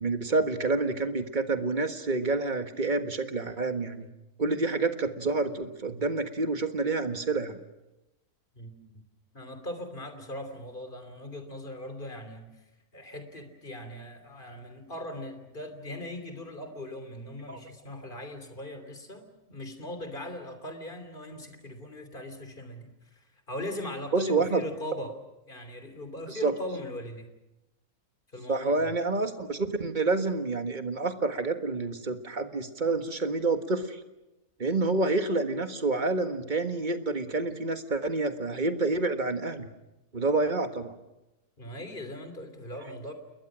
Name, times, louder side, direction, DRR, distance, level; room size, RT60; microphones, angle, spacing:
voice 1, 0.0-4.1 4.4-7.6 17.5-17.6 24.1-24.6 26.3-26.5 28.5-34.0 34.6-39.7 40.1-40.9, right 3 dB, 35° right, 8 dB, 1.6 m, -28 dB
voice 2, 8.6-9.0 9.3-12.6 12.9-25.1 25.5-27.3 28.3-28.9 41.6-43.1, left 1 dB, 35° left, 7 dB, 3.3 m, -40 dB
29.0 x 21.5 x 6.3 m, 0.96 s
omnidirectional pair, 1.5 m